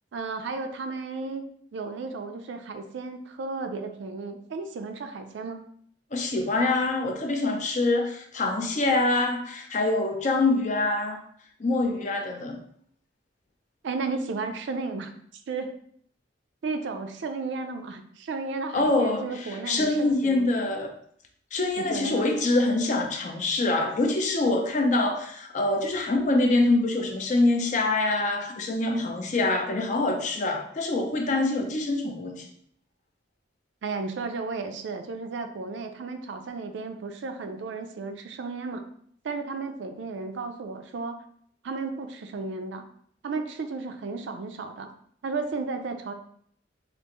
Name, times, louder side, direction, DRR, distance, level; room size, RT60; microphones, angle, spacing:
voice 1, 0.1-1.4 1.7-5.7 13.8-15.1 15.5-15.8 16.6-20.5 21.8-22.3 33.8-38.8 39.2-41.2 41.6-42.8 43.2-44.9 45.2-46.1, right 4 dB, 70° right, 7 dB, 0.4 m, -34 dB
voice 2, 6.1-11.2 11.6-12.6 18.7-20.9 21.5-32.5, left 2 dB, 40° left, 3 dB, 0.4 m, -25 dB
3.3 x 2.5 x 2.9 m, 0.64 s
head